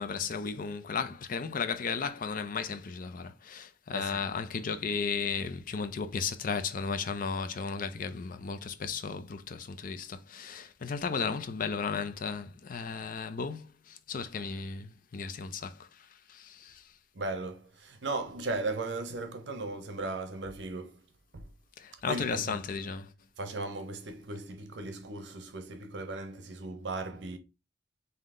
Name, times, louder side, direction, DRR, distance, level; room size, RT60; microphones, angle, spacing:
voice 1, 0.0-16.9 21.8-23.1, left 5 dB, 50° left, 0.5 m, -35 dB
voice 2, 3.9-4.3 17.1-21.1 21.3-21.5 22.1-22.6 23.4-27.4, right 2 dB, 70° right, 0.7 m, -37 dB
3.8 x 2.7 x 3.6 m
head